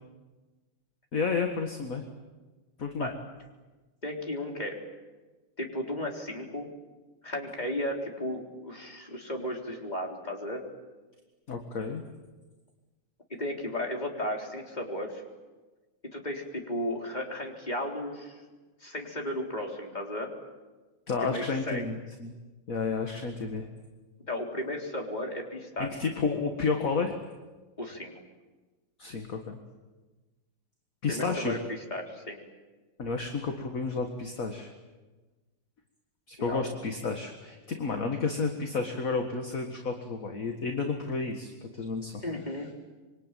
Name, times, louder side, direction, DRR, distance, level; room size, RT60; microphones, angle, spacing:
voice 1, 1.1-2.0 2.8-3.1 11.5-12.0 21.1-22.3 22.7-23.7 25.8-27.2 29.0-29.6 31.0-31.6 33.0-34.7 36.3-42.2, left 4 dB, 40° left, 4 dB, 2.0 m, -31 dB
voice 2, 4.0-4.8 5.6-6.7 7.2-10.6 13.4-15.2 16.1-18.4 18.8-20.3 21.2-21.9 24.3-25.9 27.8-28.1 31.1-31.6 31.9-32.4 36.4-36.7 42.2-42.7, left 1 dB, 20° left, 1 dB, 3.9 m, -34 dB
26.5 x 24.0 x 9.2 m, 1.2 s
omnidirectional pair, 2.4 m